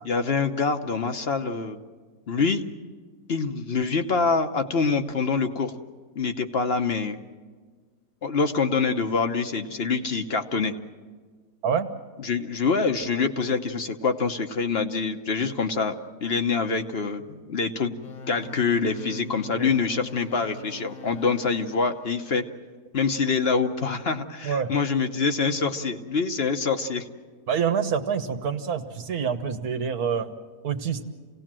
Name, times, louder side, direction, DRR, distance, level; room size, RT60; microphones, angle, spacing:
voice 1, 0.0-1.8 2.3-2.6 3.3-5.8 6.1-7.2 8.2-10.7 12.2-18.0 18.3-22.4 22.9-27.1, left 4 dB, 45° left, 7 dB, 1.1 m, -25 dB
sound 1, 18.0-22.5, left 4 dB, 75° left, 1.6 m, -42 dB
voice 2, 27.5-30.3 30.6-31.0, right 7 dB, 90° right, 7 dB, 1.7 m, -26 dB
27.5 x 18.0 x 7.5 m, 1.5 s
omnidirectional pair, 1.6 m